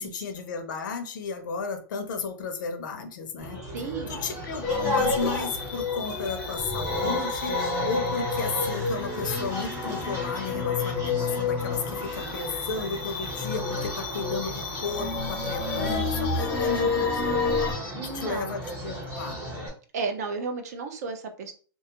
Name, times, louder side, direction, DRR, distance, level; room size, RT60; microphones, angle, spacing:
voice 1, 0.0-3.6 4.1-7.6 7.8-17.5 17.9-19.4, left 5 dB, 55° left, 7 dB, 0.5 m, -34 dB
sound 1, 3.4-19.7, right 1 dB, 25° right, 1.0 m, -35 dB
voice 2, 3.6-4.1 18.0-18.6 19.9-21.5, right 4 dB, 45° right, 6 dB, 0.4 m, -33 dB
sound 2, 4.6-17.7, left 4 dB, 10° left, 0.7 m, -29 dB
2.4 x 2.2 x 2.8 m, 0.39 s
supercardioid pair, 180°, 12 cm